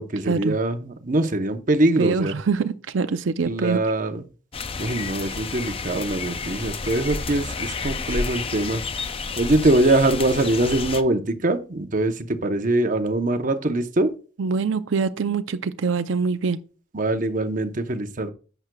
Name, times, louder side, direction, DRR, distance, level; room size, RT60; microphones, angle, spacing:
voice 1, 0.0-2.4 3.4-4.2 4.8-8.8 9.4-14.1 16.9-18.3, right 2 dB, 40° right, 0.8 m, -23 dB
voice 2, 2.0-3.8 14.4-16.6, right 5 dB, 75° right, 0.5 m, -24 dB
sound 1, 4.5-11.0, left 4 dB, 30° left, 0.4 m, -30 dB
10.5 x 7.9 x 2.3 m
head